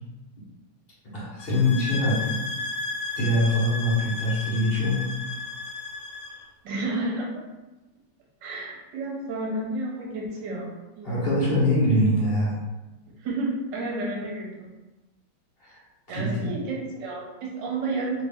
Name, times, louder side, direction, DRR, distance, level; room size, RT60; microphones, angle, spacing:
voice 1, 1.1-2.4 3.2-5.1 11.0-12.5 15.6-15.8 16.1-16.5, left 1 dB, 40° left, -7 dB, 0.8 m, -23 dB
sound 1, 1.4-6.4, left 3 dB, 80° left, 1.4 m, -34 dB
voice 2, 6.6-7.4 8.4-11.2 13.2-14.7 16.1-18.2, right 2 dB, 70° right, -3 dB, 1.3 m, -31 dB
3.1 x 2.6 x 3.4 m, 1.1 s
omnidirectional pair, 2.2 m